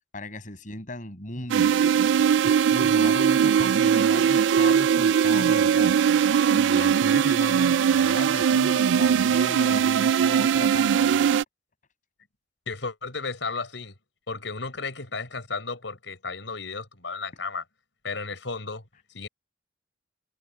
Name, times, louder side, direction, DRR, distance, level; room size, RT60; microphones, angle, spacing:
voice 1, 0.1-1.9 2.7-5.9 6.5-11.3, left 1 dB, 45° left, 6.9 m, -37 dB
sound 1, 1.5-11.4, right 8 dB, 75° right, 0.3 m, -20 dB
voice 2, 12.7-13.9 14.3-17.6 18.0-18.9 19.1-19.3, left 4 dB, 80° left, 4.9 m, -33 dB
head